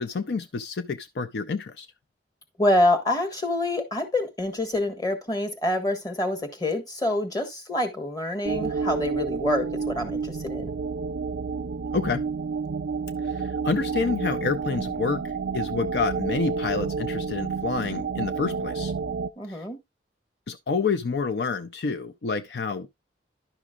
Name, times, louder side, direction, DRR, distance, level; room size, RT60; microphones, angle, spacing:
voice 1, 0.0-1.9 11.9-12.2 13.2-18.9 19.5-19.6 20.5-22.9, left 4 dB, 65° left, 0.5 m, -28 dB
voice 2, 2.6-10.7 19.4-19.8, left 1 dB, 20° left, 1.4 m, -26 dB
sound 1, 8.4-19.3, right 5 dB, 65° right, 0.4 m, -30 dB
11.0 x 6.0 x 2.3 m
head